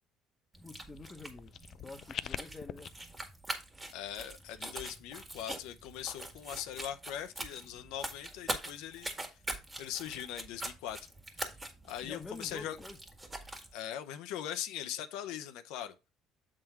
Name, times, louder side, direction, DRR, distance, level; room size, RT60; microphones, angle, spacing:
sound 1, 0.5-13.7, right 1 dB, 15° right, 1.7 m, -43 dB
voice 1, 0.6-1.5 1.8-2.9 12.0-13.0, left 3 dB, 15° left, 1.1 m, -47 dB
sound 2, 1.0-2.9, left 10 dB, 55° left, 0.3 m, -43 dB
voice 2, 3.9-9.2 9.8-11.0 11.3-11.5 11.8-12.8 13.7-15.9, left 10 dB, 85° left, 0.7 m, -41 dB
7.7 x 3.8 x 4.5 m
cardioid pair, 110°, 0 cm